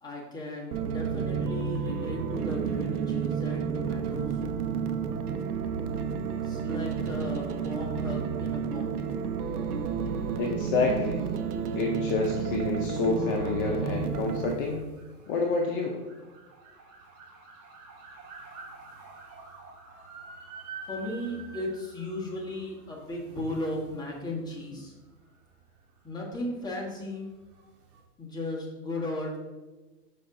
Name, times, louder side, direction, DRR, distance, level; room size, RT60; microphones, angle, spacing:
voice 1, 0.0-4.6 6.3-9.0 20.8-24.9 26.0-27.3 28.2-29.4, left 1 dB, 10° left, -3 dB, 1.3 m, -36 dB
sound 1, 0.7-14.5, right 7 dB, 70° right, 0.8 m, -31 dB
voice 2, 10.4-11.2 11.7-14.8 15.3-16.0, left 4 dB, 35° left, 1 dB, 0.7 m, -28 dB
sound 2, 11.7-28.0, right 4 dB, 45° right, 2.2 m, -50 dB
6.5 x 5.2 x 3.7 m, 1.2 s
hypercardioid pair, 140°, 46 cm